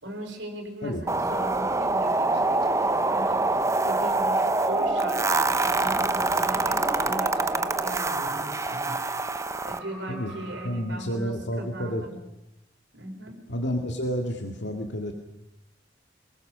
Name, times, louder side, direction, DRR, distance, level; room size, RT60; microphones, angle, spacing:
voice 1, 0.0-3.5 3.8-9.0 9.6-12.2 12.9-13.4, right 1 dB, 70° right, 4 dB, 4.9 m, -39 dB
sound 1, 1.1-9.8, right 2 dB, 15° right, 0.9 m, -25 dB
sound 2, 4.5-10.7, right 2 dB, ahead, 7.1 m, -44 dB
sound 3, 4.7-9.7, equal, 35° left, 6.8 m, -41 dB
voice 2, 10.1-12.0 13.5-15.1, equal, 65° left, 3 dB, 2.2 m, -30 dB
27.0 x 20.5 x 6.7 m, 0.87 s
head